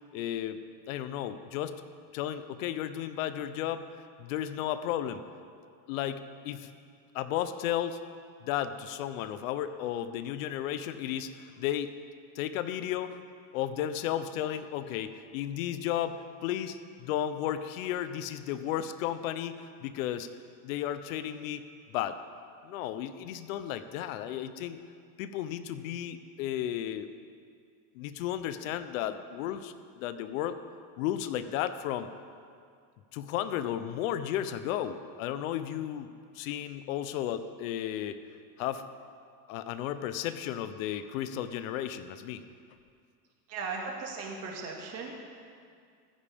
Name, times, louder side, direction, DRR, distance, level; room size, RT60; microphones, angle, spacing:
voice 1, 0.1-0.6 0.9-1.8 2.1-3.9 4.2-5.2 5.9-6.7 7.1-8.0 8.4-12.0 12.3-13.2 13.5-20.3 20.6-22.2 22.6-24.8 25.2-27.1 27.9-30.6 31.0-32.1 33.1-38.2 38.6-38.9 39.5-42.4, left 11 dB, 60° left, 11 dB, 0.8 m, -34 dB
voice 2, 43.5-45.1, right 4 dB, 30° right, -1 dB, 2.1 m, -37 dB
15.5 x 14.5 x 3.6 m, 2.2 s
supercardioid pair, 155°, 47 cm